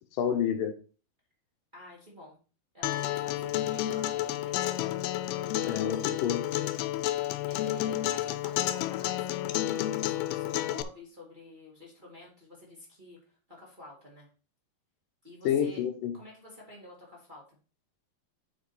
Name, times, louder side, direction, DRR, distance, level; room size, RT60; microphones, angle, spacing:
voice 1, 0.2-0.7 5.6-6.5 15.4-16.2, left 9 dB, 75° left, 2.3 m, -28 dB
voice 2, 1.7-2.4 2.7-4.8 7.5-14.3 15.2-15.8 16.1-17.6, left 1 dB, 20° right, 1.3 m, -50 dB
Acoustic guitar, 2.8-10.8, left 14 dB, 90° left, 2.6 m, -30 dB
8.3 x 5.0 x 4.1 m
omnidirectional pair, 4.6 m